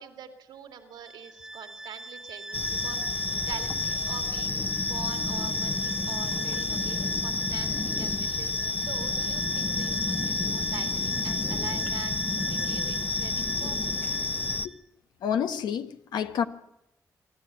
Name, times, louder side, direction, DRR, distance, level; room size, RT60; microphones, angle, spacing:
voice 1, 0.0-13.9, right 8 dB, 85° right, 2.4 m, -44 dB
Bowed string instrument, 0.9-14.8, right 2 dB, 5° right, 1.2 m, -40 dB
sound 1, 2.5-14.7, left 3 dB, 25° left, 1.0 m, -29 dB
voice 2, 15.2-16.5, left 8 dB, 85° left, 1.2 m, -29 dB
25.0 x 12.5 x 9.6 m
cardioid pair, 60°, 7 cm